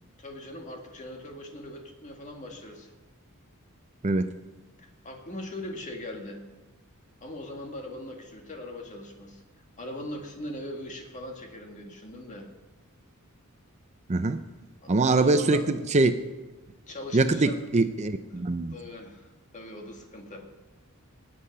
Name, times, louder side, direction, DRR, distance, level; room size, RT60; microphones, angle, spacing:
voice 1, 0.2-2.9 4.8-6.4 7.2-9.4 9.8-12.5 14.8-15.7 16.9-17.6 18.3-18.4 18.7-19.3 19.5-20.4, left 1 dB, 35° left, 2 dB, 2.0 m, -40 dB
voice 2, 14.1-14.4 14.9-16.1 17.1-18.7, right 3 dB, 30° right, 9 dB, 0.5 m, -23 dB
20.0 x 8.6 x 5.4 m, 1.2 s
head